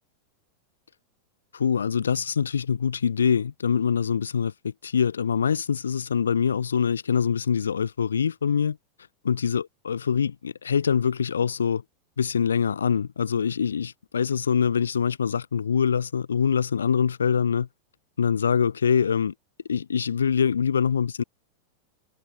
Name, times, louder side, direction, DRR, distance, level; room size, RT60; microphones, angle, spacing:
voice 1, 1.5-8.8 9.2-11.8 12.2-17.7 18.2-19.3 19.7-21.2, left 7 dB, 70° left, 1.3 m, -24 dB
figure-of-eight pair, 90°, 0 cm